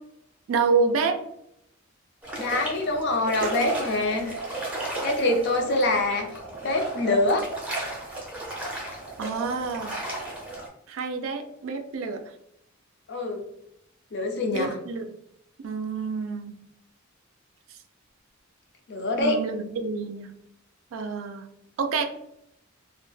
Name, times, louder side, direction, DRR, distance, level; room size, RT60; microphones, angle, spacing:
voice 1, 0.5-1.2 9.2-9.9 10.9-12.2 14.5-15.1 15.6-16.5 17.7-17.8 19.2-20.3 20.9-21.5 21.8-22.0, right 4 dB, 70° right, 7 dB, 0.3 m, -28 dB
sound 1, 2.2-10.7, right 2 dB, 5° right, 0.5 m, -34 dB
voice 2, 2.4-4.4 5.0-6.3 6.6-7.4 13.1-13.4 14.1-14.7 18.9-19.4, left 2 dB, 55° left, 3 dB, 0.5 m, -25 dB
2.1 x 2.0 x 3.1 m, 0.77 s
head